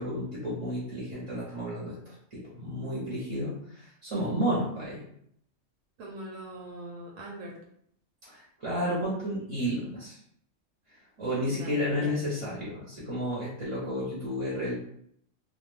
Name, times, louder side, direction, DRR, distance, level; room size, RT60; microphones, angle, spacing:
voice 1, 0.0-5.0 8.3-10.2 11.2-14.7, equal, 30° right, -7 dB, 0.8 m, -32 dB
voice 2, 6.0-7.5 11.4-12.1, right 1 dB, 80° right, -1 dB, 1.1 m, -42 dB
2.4 x 2.3 x 3.3 m, 0.70 s
omnidirectional pair, 1.4 m